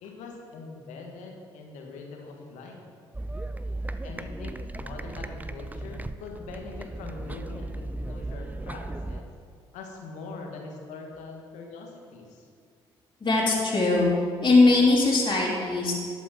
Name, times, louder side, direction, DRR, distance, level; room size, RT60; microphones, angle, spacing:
voice 1, 0.0-2.9 4.0-7.8 8.1-9.3 9.7-12.5, left 3 dB, 70° left, 1 dB, 1.7 m, -42 dB
sound 1, 3.1-9.2, right 2 dB, 10° right, 0.5 m, -36 dB
voice 2, 13.2-14.1 14.4-16.0, left 3 dB, 35° left, -7 dB, 2.9 m, -20 dB
11.5 x 8.3 x 4.4 m, 2.2 s
hypercardioid pair, 50°, 13 cm